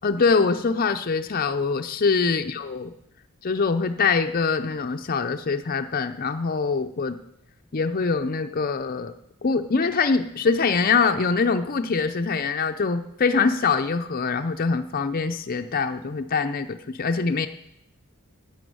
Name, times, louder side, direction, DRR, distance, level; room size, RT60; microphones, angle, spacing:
voice 1, 0.0-2.9 3.4-7.2 7.7-9.1 9.4-17.5, left 4 dB, 45° left, 6 dB, 0.6 m, -24 dB
11.5 x 7.1 x 9.3 m, 0.81 s
head